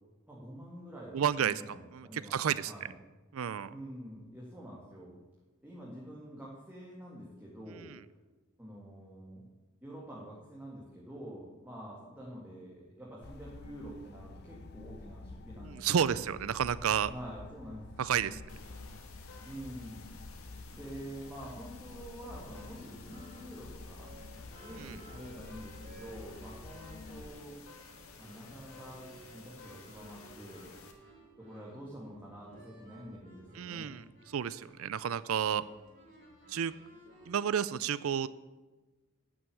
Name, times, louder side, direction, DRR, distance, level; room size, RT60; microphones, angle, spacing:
voice 1, 0.3-3.0 3.7-5.2 5.6-7.9 8.6-9.5 9.8-16.2 17.1-18.0 19.4-20.3 20.7-24.1 24.6-27.6 28.2-30.7 31.4-34.0, equal, 10° right, -5 dB, 2.0 m, -47 dB
voice 2, 1.1-1.5 1.9-2.7 3.3-3.7 15.6-17.1 18.0-18.4 24.8-25.0 33.6-34.0 34.3-35.6 36.5-36.7 37.3-38.3, right 8 dB, 75° right, 17 dB, 0.4 m, -31 dB
sound 1, 13.2-27.3, left 3 dB, 50° left, 0.5 m, -49 dB
sound 2, 18.5-30.9, left 4 dB, 80° left, 1.7 m, -53 dB
sound 3, 20.9-37.6, right 1 dB, 40° right, 4.1 m, -57 dB
11.0 x 6.3 x 8.5 m, 1.2 s
head